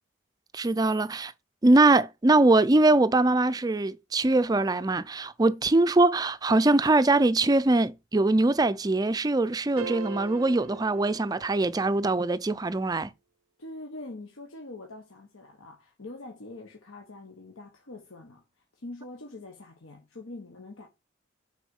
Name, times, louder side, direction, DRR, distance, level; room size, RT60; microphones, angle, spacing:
voice 1, 0.5-1.3 1.6-13.1, right 2 dB, 20° right, 0.4 m, -22 dB
sound 1, 9.8-12.0, right 5 dB, 85° right, 0.4 m, -40 dB
voice 2, 13.6-18.4 18.7-20.9, left 2 dB, 80° left, 1.2 m, -44 dB
6.1 x 4.4 x 5.4 m
head